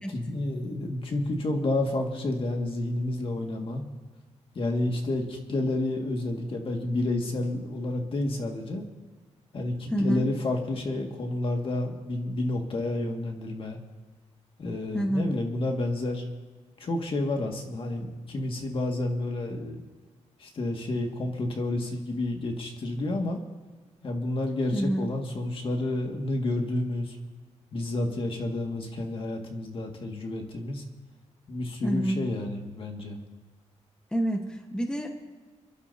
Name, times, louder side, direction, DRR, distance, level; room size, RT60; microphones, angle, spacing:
voice 1, 0.1-3.8 4.6-8.8 9.5-13.8 14.6-16.2 16.8-19.8 20.4-23.4 24.0-27.2 27.7-30.8 31.5-33.2, left 2 dB, 50° left, 2 dB, 2.0 m, -30 dB
voice 2, 9.9-10.3 14.9-15.4 24.7-25.1 31.8-32.3 34.1-35.1, equal, 5° left, 3 dB, 1.3 m, -27 dB
27.5 x 11.5 x 2.8 m, 1.4 s
wide cardioid pair, 130°, 12 cm